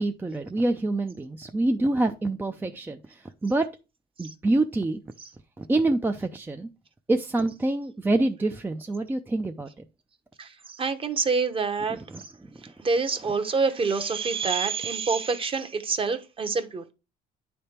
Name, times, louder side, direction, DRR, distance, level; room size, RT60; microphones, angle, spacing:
voice 1, 0.0-3.7 4.2-5.0 5.6-6.7 7.1-9.7 11.9-12.2, right 2 dB, 10° right, 0.5 m, -26 dB
voice 2, 10.4-12.0 12.8-16.9, right 4 dB, 30° right, 1.0 m, -26 dB
9.8 x 3.5 x 4.3 m
cardioid pair, 110°, 17 cm